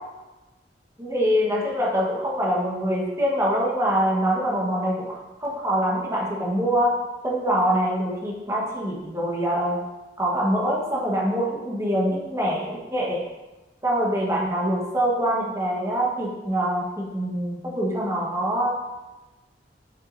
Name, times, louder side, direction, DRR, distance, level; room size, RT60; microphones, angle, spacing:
voice 1, 1.0-5.1 5.4-7.0 7.2-9.8 10.2-13.2 13.8-18.7, equal, 15° right, -3 dB, 1.2 m, -24 dB
7.0 x 6.3 x 2.6 m, 1.1 s
head